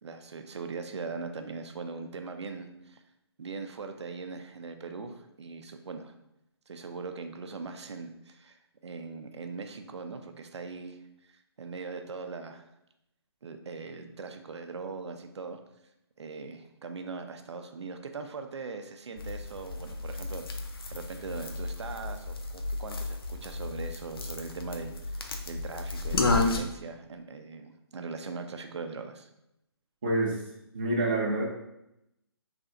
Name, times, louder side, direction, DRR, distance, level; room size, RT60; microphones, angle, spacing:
voice 1, 0.0-3.0 3.4-6.1 6.7-8.6 8.8-11.0 11.2-12.6 13.4-15.6 16.2-20.5 20.9-25.2 25.5-29.3, right 4 dB, 85° right, 6 dB, 0.5 m, -40 dB
sound 1, 19.2-26.6, left 3 dB, 60° left, 0.5 m, -32 dB
voice 2, 30.0-30.4 30.7-31.4, right 2 dB, 20° right, -3 dB, 0.5 m, -27 dB
3.3 x 2.4 x 3.9 m, 0.84 s
hypercardioid pair, 175°, 14 cm